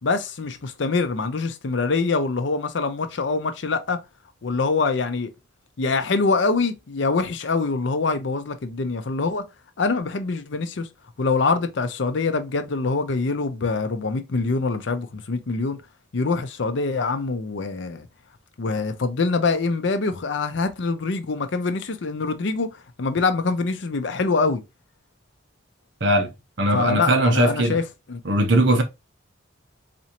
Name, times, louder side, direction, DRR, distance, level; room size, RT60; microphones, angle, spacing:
voice 1, 0.0-4.0 4.4-5.3 5.8-9.4 9.8-10.9 11.2-15.8 16.1-18.1 18.6-24.6 26.7-28.2, left 4 dB, 65° left, 0.5 m, -24 dB
voice 2, 26.6-27.8 28.3-28.8, right 1 dB, 60° right, 0.8 m, -19 dB
4.2 x 2.6 x 2.8 m
head